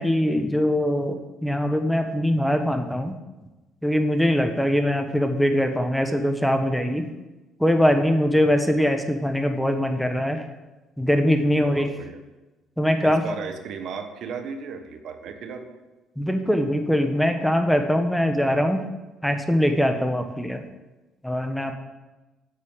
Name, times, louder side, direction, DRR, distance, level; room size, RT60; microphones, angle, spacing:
voice 1, 0.0-3.1 3.8-7.1 7.6-10.5 11.0-11.9 12.8-13.2 16.2-18.8 19.2-20.6 21.2-21.7, equal, ahead, 6 dB, 1.4 m, -22 dB
voice 2, 11.5-12.2 13.0-15.8, right 6 dB, 65° right, 7 dB, 1.4 m, -35 dB
8.4 x 8.3 x 9.0 m, 1.1 s
supercardioid pair, 80°, 0 cm